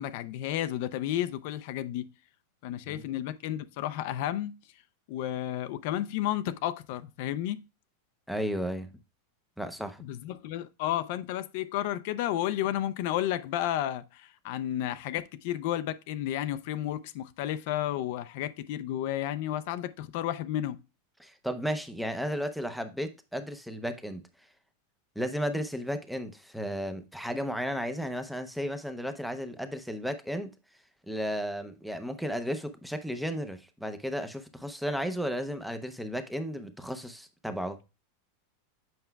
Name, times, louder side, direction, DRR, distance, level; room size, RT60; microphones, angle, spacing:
voice 1, 0.0-2.1 2.6-4.5 5.1-7.6 10.0-20.8, left 12 dB, 50° left, 0.4 m, -32 dB
voice 2, 2.8-3.2 8.3-8.9 9.6-10.0 21.2-24.2 25.2-30.5 31.1-37.8, equal, ahead, 0.6 m, -34 dB
7.7 x 5.6 x 2.2 m
supercardioid pair, 165°, 0 cm